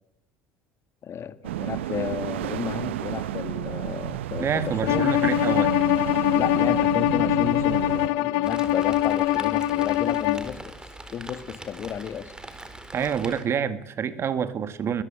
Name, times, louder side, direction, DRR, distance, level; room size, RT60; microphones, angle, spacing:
voice 1, 1.0-5.2 6.3-10.7 11.1-12.3, left 8 dB, 45° left, 12 dB, 2.0 m, -32 dB
sound 1, 1.4-8.1, right 13 dB, 85° right, 0.9 m, -31 dB
voice 2, 4.4-5.8 12.9-15.0, right 7 dB, 45° right, 12 dB, 2.0 m, -27 dB
Bowed string instrument, 4.9-10.5, left 15 dB, 70° left, 1.0 m, -23 dB
Rain, 8.4-13.4, right 1 dB, 10° right, 4.2 m, -42 dB
22.0 x 21.0 x 7.8 m, 0.76 s
hypercardioid pair, 75°, 6 cm